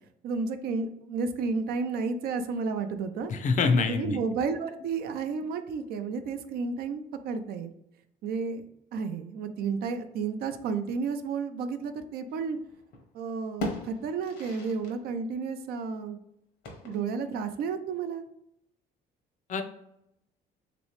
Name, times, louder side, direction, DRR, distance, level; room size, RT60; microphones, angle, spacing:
voice 1, 0.2-3.3 3.8-7.7 8.2-8.6 8.9-12.6 13.1-16.2 16.8-18.3, right 5 dB, 65° right, 9 dB, 0.4 m, -32 dB
voice 2, 3.3-4.2 19.5-19.6, left 4 dB, 50° left, 7 dB, 0.5 m, -25 dB
sound 1, 12.3-13.1 13.4-15.0 15.3-15.4 16.6-17.3, left 1 dB, 85° left, 1.0 m, -39 dB
3.1 x 2.9 x 3.0 m, 0.79 s
cardioid pair, 110°, 17 cm